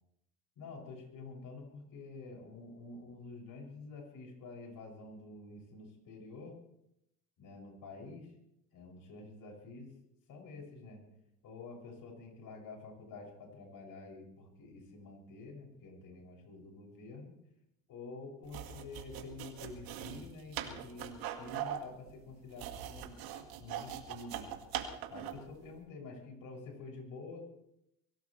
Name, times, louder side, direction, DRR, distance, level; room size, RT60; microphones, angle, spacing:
voice 1, 0.6-6.6 7.4-8.3 8.7-9.9 10.3-11.0 11.4-17.3 17.9-23.2 23.6-24.5 25.1-27.5, left 3 dB, 60° left, 0 dB, 7.3 m, -48 dB
sound 1, 18.4-25.5, right 10 dB, 70° right, 2.1 m, -41 dB
23.5 x 17.5 x 3.4 m, 0.78 s
supercardioid pair, 80°, 38 cm